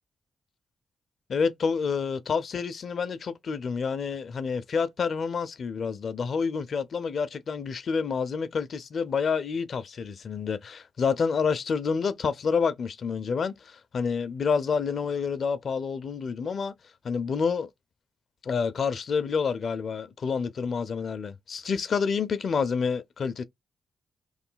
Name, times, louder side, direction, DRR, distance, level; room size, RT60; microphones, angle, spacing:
voice 1, 1.3-16.7 17.0-17.7 18.4-23.4, left 5 dB, 65° left, 0.5 m, -28 dB
3.1 x 2.2 x 3.7 m
cardioid pair, 65°, 0 cm